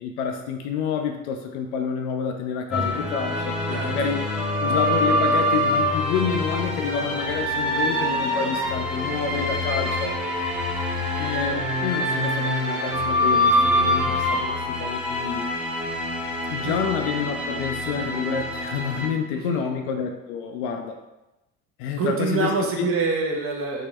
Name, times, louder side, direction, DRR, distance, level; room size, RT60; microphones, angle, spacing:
voice 1, 0.0-4.2 4.6-10.1 11.2-15.5 16.5-21.0 21.8-22.9, left 6 dB, 55° left, 5 dB, 0.5 m, -28 dB
sound 1, 2.7-19.1, left 1 dB, ahead, 0.8 m, -25 dB
voice 2, 19.3-19.7 22.0-23.9, right 4 dB, 30° right, 0 dB, 0.8 m, -26 dB
3.6 x 2.8 x 3.1 m, 1.0 s
figure-of-eight pair, 55°, 41 cm